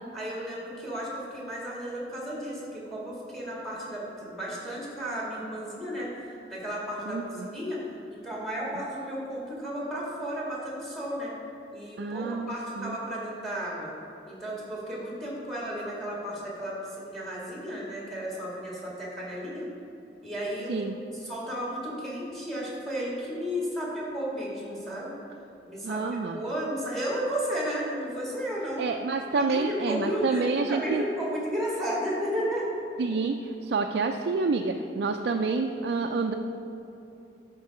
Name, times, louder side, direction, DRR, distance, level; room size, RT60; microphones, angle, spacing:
voice 1, 0.1-6.1 6.5-7.8 8.1-11.3 11.7-13.9 14.3-19.7 20.2-25.1 25.7-28.8 29.3-30.4 30.7-32.7, equal, ahead, -4 dB, 2.1 m, -33 dB
voice 2, 7.1-7.5 12.0-13.0 20.7-21.0 25.8-26.4 28.8-31.0 33.0-36.3, right 4 dB, 65° right, 3 dB, 0.4 m, -28 dB
11.5 x 4.7 x 4.8 m, 2.8 s
head